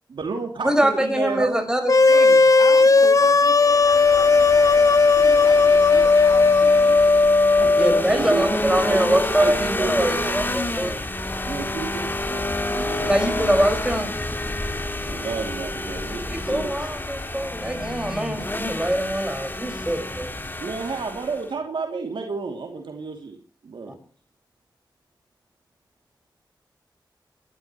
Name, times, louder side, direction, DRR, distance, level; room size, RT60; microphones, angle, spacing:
voice 1, 0.1-1.6 2.1-2.3 7.6-10.4 11.4-12.4 12.7-13.6 15.0-16.7 20.6-23.4 23.6-23.9, right 4 dB, 85° right, 3 dB, 2.8 m, -31 dB
voice 2, 0.6-2.4 3.0-3.2 7.8-11.0 13.0-14.1 16.3-20.3, right 1 dB, 10° right, 5 dB, 5.5 m, -23 dB
sound 1, 1.9-8.0, left 4 dB, 45° left, 0.9 m, -15 dB
voice 3, 2.6-7.0, left 3 dB, 60° left, 7 dB, 4.6 m, -37 dB
sound 2, 3.6-21.5, left 2 dB, 25° left, 2.0 m, -29 dB
27.5 x 12.5 x 3.1 m, 0.40 s
cardioid pair, 55°, 8 cm